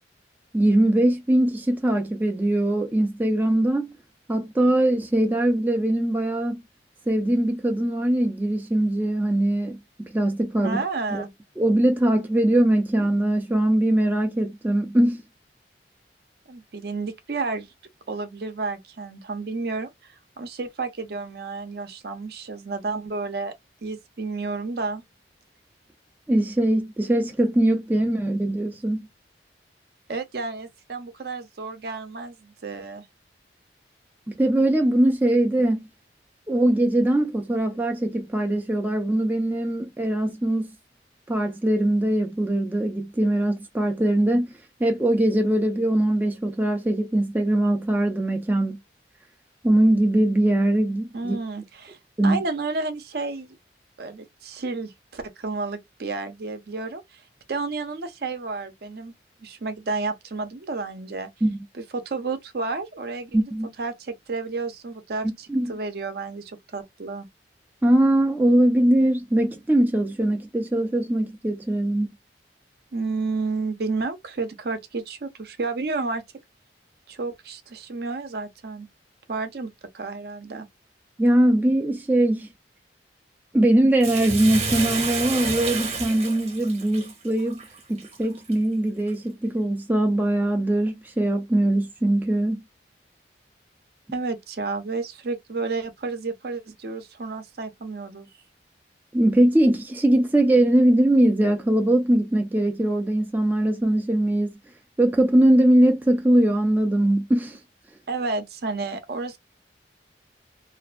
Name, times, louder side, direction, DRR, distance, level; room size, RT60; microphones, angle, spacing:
voice 1, 0.5-3.9 4.3-6.6 7.1-10.8 11.1-11.3 11.6-15.2 26.3-29.0 34.3-35.9 36.5-40.7 41.3-44.5 44.8-48.8 49.6-51.4 52.2-52.4 61.4-61.6 63.3-63.7 65.5-65.7 67.8-72.1 81.2-82.5 83.5-87.6 87.9-92.6 99.1-104.5 105.0-107.6, right 1 dB, 10° right, 0.3 m, -21 dB
voice 2, 10.6-11.3 16.5-17.7 18.1-23.5 23.8-25.0 30.1-33.0 51.1-52.0 52.2-53.6 54.0-57.2 57.5-59.1 59.4-61.3 61.7-63.3 63.8-67.3 72.9-76.2 77.1-78.9 79.3-80.7 94.1-98.3 108.1-109.4, right 3 dB, 60° right, 0.5 m, -31 dB
Bathtub (filling or washing), 84.0-88.5 89.1-89.2, right 4 dB, 35° right, 0.8 m, -30 dB
2.5 x 2.2 x 2.4 m
head